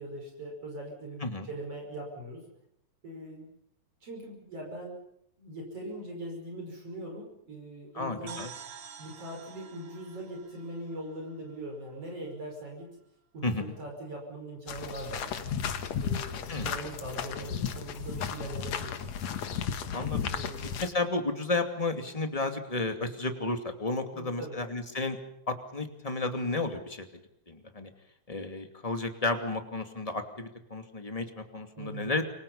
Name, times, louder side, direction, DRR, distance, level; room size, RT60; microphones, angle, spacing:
voice 1, 0.0-2.5 3.0-3.5 4.0-5.0 5.4-8.4 9.0-13.0 13.3-15.4 16.0-19.1 20.3-20.9 24.1-24.6 31.8-32.1, right 1 dB, 50° right, 0 dB, 6.6 m, -41 dB
voice 2, 7.9-8.5 13.4-13.7 16.5-16.7 19.9-20.3 20.8-25.2 25.5-27.1 27.5-27.9 28.3-32.2, left 2 dB, 15° left, 6 dB, 2.3 m, -32 dB
sound 1, 8.3-11.9, right 7 dB, 75° right, 3.4 m, -48 dB
sound 2, 14.7-20.9, left 7 dB, 65° left, 2.6 m, -34 dB
28.5 x 24.5 x 5.6 m, 0.76 s
omnidirectional pair, 3.3 m